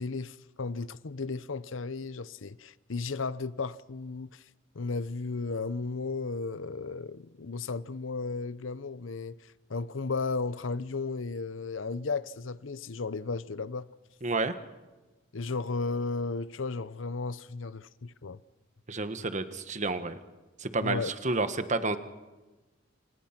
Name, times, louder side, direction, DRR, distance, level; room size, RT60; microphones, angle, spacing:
voice 1, 0.0-4.4 4.7-13.9 15.3-18.4 20.8-21.1, left 4 dB, 85° left, 0.8 m, -34 dB
voice 2, 14.2-14.5 18.9-20.2 20.6-22.0, right 3 dB, 40° right, 1.4 m, -30 dB
29.0 x 28.0 x 6.0 m
head